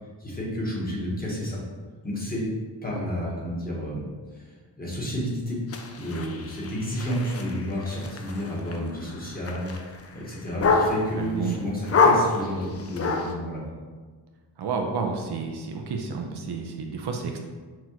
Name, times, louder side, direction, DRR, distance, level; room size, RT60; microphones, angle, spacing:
voice 1, 0.2-1.6 2.0-2.5 2.8-4.0 4.3-5.6 6.0-13.6, equal, 20° left, -6 dB, 1.1 m, -31 dB
sound 1, 5.7-11.3 11.8-13.3, left 4 dB, 35° left, 0.4 m, -26 dB
voice 2, 11.2-11.6 14.6-17.4, right 5 dB, 65° right, 2 dB, 0.5 m, -30 dB
6.0 x 2.4 x 2.9 m, 1.4 s
wide cardioid pair, 145°, 43 cm